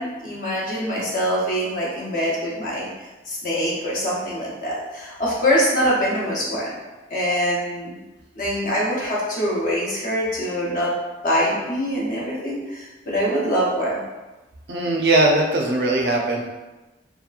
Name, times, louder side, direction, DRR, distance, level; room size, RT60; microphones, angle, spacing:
voice 1, 0.0-2.9 3.3-6.8 7.1-8.0 8.4-10.9 11.2-14.0, equal, 45° left, -5 dB, 0.7 m, -24 dB
voice 2, 14.7-16.5, right 2 dB, 70° right, 0 dB, 0.5 m, -20 dB
2.8 x 2.2 x 2.4 m, 1.1 s
head